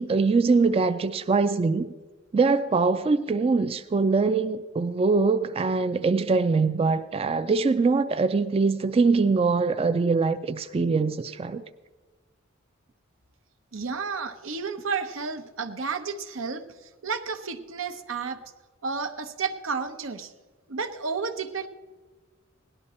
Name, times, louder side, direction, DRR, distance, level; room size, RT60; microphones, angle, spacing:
voice 1, 0.0-1.9 2.3-11.6, right 4 dB, 30° right, 0.3 m, -23 dB
voice 2, 13.7-16.6 17.0-18.4 18.8-20.3 20.7-21.7, right 5 dB, 85° right, 0.9 m, -31 dB
17.5 x 11.0 x 4.3 m
head